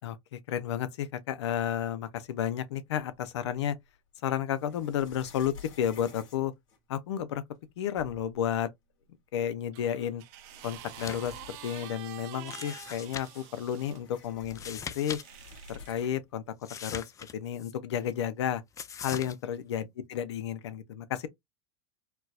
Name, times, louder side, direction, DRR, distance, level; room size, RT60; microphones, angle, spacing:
voice 1, 0.0-3.8 4.2-6.5 6.9-7.4 7.8-8.7 9.3-10.2 10.6-15.2 15.7-16.4 16.8-17.0 17.3-18.6 19.0-21.3, left 10 dB, 90° left, 0.5 m, -32 dB
sound 1, 3.1-3.7 4.5-7.2 7.7-7.8 8.0-8.4 9.5-9.6 10.2-12.4 12.7-12.8 13.1-16.3, left 4 dB, 55° left, 2.1 m, -52 dB
sound 2, 9.7-14.0 14.9-15.9 16.8-17.0, right 14 dB, 60° right, 0.5 m, -47 dB
sound 3, 10.9-11.4 11.7-11.8 12.5-13.5 14.5-15.2 15.5-15.6 16.6-17.7 18.8-19.4, left 7 dB, 25° left, 0.4 m, -41 dB
4.4 x 2.1 x 2.3 m
supercardioid pair, 115°, 14 cm